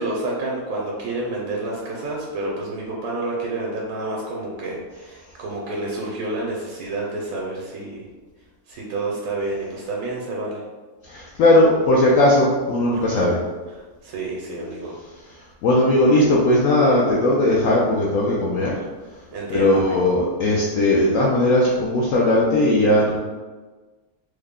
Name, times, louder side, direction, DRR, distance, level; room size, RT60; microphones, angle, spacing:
voice 1, 0.0-8.1 8.7-10.6 12.9-13.3 13.7-15.0 19.3-20.1, right 2 dB, 70° right, -3 dB, 1.0 m, -29 dB
voice 2, 11.0-13.4 15.6-18.8 19.5-23.2, left 1 dB, 70° left, -5 dB, 0.9 m, -18 dB
3.3 x 2.1 x 3.5 m, 1.3 s
omnidirectional pair, 1.6 m